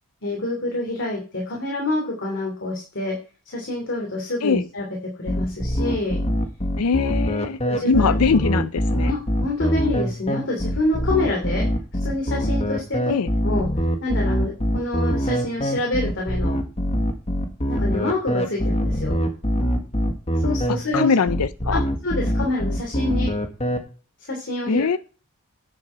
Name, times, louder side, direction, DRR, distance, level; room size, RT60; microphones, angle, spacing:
voice 1, 0.2-3.2 3.4-4.9 5.2-6.2 7.6-8.4 9.0-11.7 12.0-13.1 13.4-13.7 14.0-16.6 17.7-19.2 20.4-21.1 21.7-23.3 24.2-25.0, left 2 dB, 55° left, 3.1 m, -27 dB
sound 1, 5.3-23.8, equal, 30° left, 1.6 m, -23 dB
voice 2, 6.8-7.6 7.8-9.1 13.1-13.3 20.9-21.8 24.7-25.0, left 5 dB, 85° left, 0.5 m, -21 dB
10.0 x 7.0 x 5.6 m
head